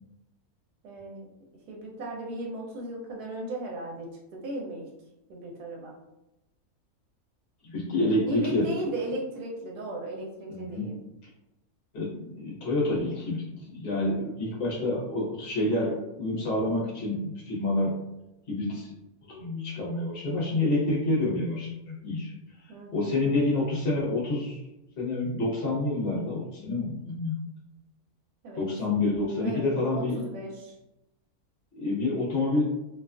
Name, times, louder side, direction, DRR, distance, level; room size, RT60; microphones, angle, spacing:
voice 1, 0.8-1.2 1.7-4.9 5.3-5.9 8.3-11.0 22.7-23.2 28.4-28.7 29.4-30.7, right 1 dB, 85° right, -1 dB, 1.1 m, -36 dB
voice 2, 7.6-8.7 10.5-10.9 11.9-17.9 18.5-18.9 19.3-22.3 22.9-24.6 25.0-27.4 28.6-30.2 31.7-32.7, left 2 dB, 45° left, -6 dB, 1.0 m, -28 dB
2.7 x 2.3 x 2.4 m, 0.93 s
omnidirectional pair, 1.6 m